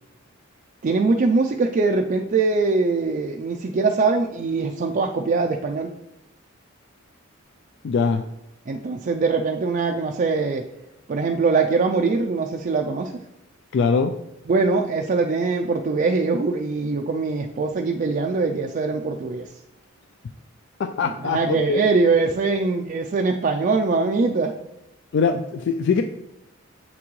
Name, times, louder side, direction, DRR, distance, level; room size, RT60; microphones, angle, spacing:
voice 1, 0.8-5.9 8.7-10.6 11.1-13.1 14.5-19.5 21.2-24.5, right 4 dB, 40° right, 2 dB, 0.4 m, -22 dB
voice 2, 7.8-8.2 13.7-14.2 20.8-21.8 25.1-26.0, left 5 dB, 55° left, 7 dB, 0.3 m, -22 dB
7.8 x 5.9 x 3.1 m, 0.88 s
head